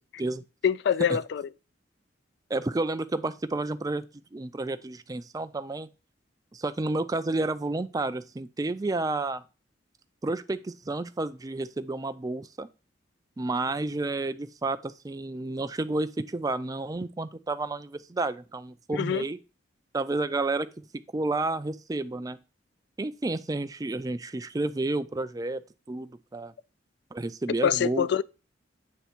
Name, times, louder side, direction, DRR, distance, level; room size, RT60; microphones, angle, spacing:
voice 1, 0.6-1.5 18.9-19.2 27.6-28.2, left 8 dB, 60° left, 0.3 m, -25 dB
voice 2, 2.5-4.0 4.3-5.9 6.5-9.4 10.2-12.7 13.4-19.4 19.9-20.9 21.1-22.4 23.0-25.6 25.9-26.5 27.1-28.1, right 2 dB, 20° right, 0.4 m, -31 dB
8.2 x 3.4 x 4.4 m
head